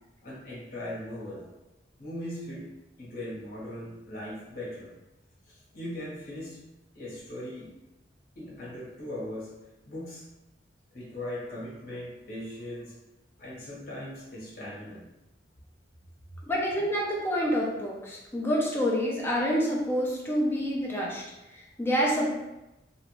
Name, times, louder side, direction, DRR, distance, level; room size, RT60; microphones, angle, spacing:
voice 1, 0.2-1.5 2.0-2.7 3.0-4.9 5.5-6.6 6.9-7.7 8.3-9.5 9.9-10.2 10.9-12.9 13.4-15.0, left 1 dB, 55° left, -6 dB, 1.2 m, -39 dB
voice 2, 16.5-21.2 21.5-22.3, equal, 15° left, -3 dB, 0.5 m, -27 dB
2.9 x 2.5 x 3.0 m, 0.97 s
head